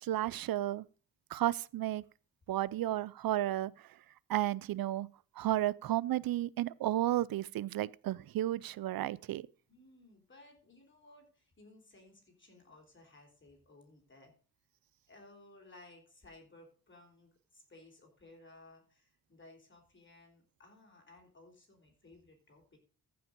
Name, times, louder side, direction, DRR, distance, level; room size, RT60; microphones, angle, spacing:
voice 1, 0.0-0.9 1.3-2.0 2.5-3.7 4.3-5.1 5.4-9.5, right 14 dB, 85° right, 0.5 m, -33 dB
voice 2, 9.7-14.3 15.1-22.8, left 2 dB, 35° left, 3.8 m, -59 dB
14.5 x 5.8 x 5.1 m
wide cardioid pair, 115°, 34 cm